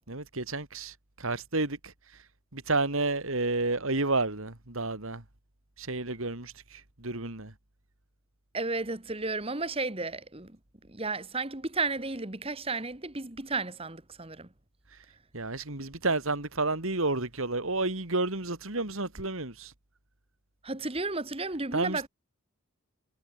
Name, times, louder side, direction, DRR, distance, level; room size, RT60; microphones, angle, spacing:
voice 1, 0.1-0.9 1.2-1.8 2.5-5.2 5.8-6.5 7.0-7.5 15.3-19.7 21.7-22.1, right 2 dB, 70° right, 3.1 m, -30 dB
voice 2, 8.5-10.6 10.9-14.5 20.6-22.1, right 3 dB, 25° right, 1.7 m, -33 dB
head